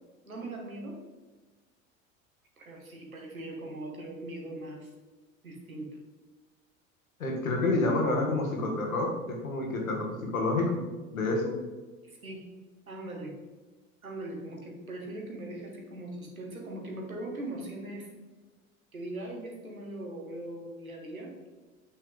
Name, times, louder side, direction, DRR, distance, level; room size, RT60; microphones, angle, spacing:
voice 1, 0.3-1.0 2.6-4.9 5.4-5.9 12.0-12.4 12.9-13.3 14.0-18.1 18.9-21.3, right 1 dB, 90° right, 1 dB, 1.8 m, -40 dB
voice 2, 7.2-10.8 11.1-11.5, left 2 dB, 80° left, 1 dB, 2.0 m, -28 dB
8.4 x 6.5 x 3.8 m, 1.3 s
figure-of-eight pair, 75°, 41 cm